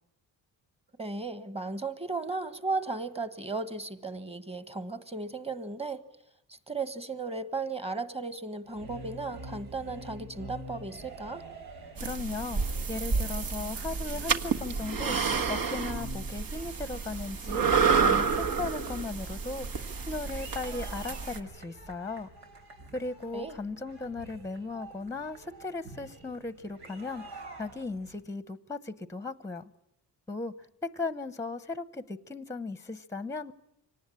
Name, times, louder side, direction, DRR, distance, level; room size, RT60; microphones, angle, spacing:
voice 1, 1.0-6.0 6.5-11.5 23.3-23.5, right 3 dB, 15° right, 13 dB, 1.4 m, -35 dB
sound 1, 8.6-28.2, right 1 dB, 90° right, 4.4 m, -47 dB
voice 2, 12.0-12.6 12.9-22.3 22.9-29.7 30.3-30.5 30.8-33.5, left 3 dB, 5° left, 14 dB, 0.8 m, -37 dB
sound 2, 12.0-21.4, right 5 dB, 60° right, 1.6 m, -30 dB
25.0 x 18.5 x 10.0 m, 0.85 s
cardioid pair, 110°, 40 cm